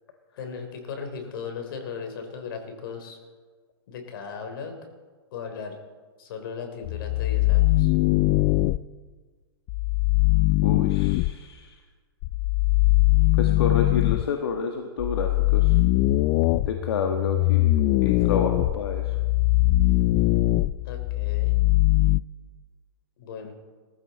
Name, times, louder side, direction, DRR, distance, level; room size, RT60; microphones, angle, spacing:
voice 1, 0.4-3.2 3.9-4.7 5.3-5.8 6.2-7.9 20.8-21.5 23.2-23.5, left 5 dB, 60° left, 5 dB, 3.5 m, -37 dB
sound 1, 6.8-8.8 9.7-11.3 12.2-14.3 15.0-22.2, left 19 dB, 30° left, 0.4 m, -21 dB
voice 2, 10.6-11.8 13.3-15.8 16.7-17.7 18.0-19.2, left 5 dB, 75° left, 4 dB, 1.6 m, -29 dB
20.5 x 14.0 x 4.2 m, 1.5 s
hypercardioid pair, 145°, 13 cm